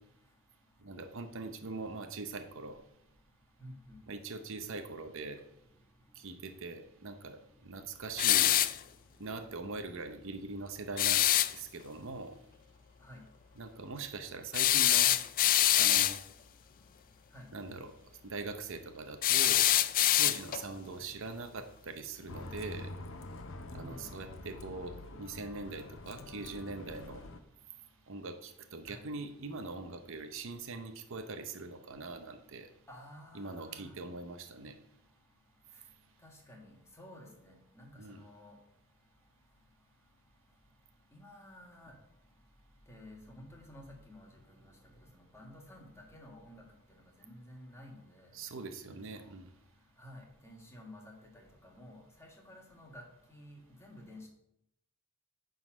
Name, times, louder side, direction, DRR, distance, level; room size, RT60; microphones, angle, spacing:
voice 1, 0.8-2.8 4.1-5.4 6.2-8.6 9.2-12.4 13.6-15.1 15.7-16.2 17.5-17.9 18.2-19.7 20.1-22.9 23.7-27.2 28.1-32.7 33.3-34.8 38.0-38.2 48.3-49.5, right 3 dB, 65° right, 8 dB, 0.8 m, -42 dB
voice 2, 3.6-4.0 13.0-13.2 17.3-17.5 23.6-24.1 28.9-29.0 32.9-33.9 36.2-38.6 41.1-41.9 42.9-44.3 45.3-46.6 47.2-48.3 49.2-49.3 50.0-51.1 51.6-53.0 53.3-54.3, left 1 dB, 15° left, 0 dB, 1.7 m, -52 dB
sound 1, 8.2-8.8 11.0-11.5 14.5-16.2 19.2-20.7, left 13 dB, 40° left, 0.3 m, -25 dB
Bus, 22.3-27.4, left 2 dB, 65° left, 0.7 m, -46 dB
9.4 x 3.9 x 6.1 m, 0.79 s
head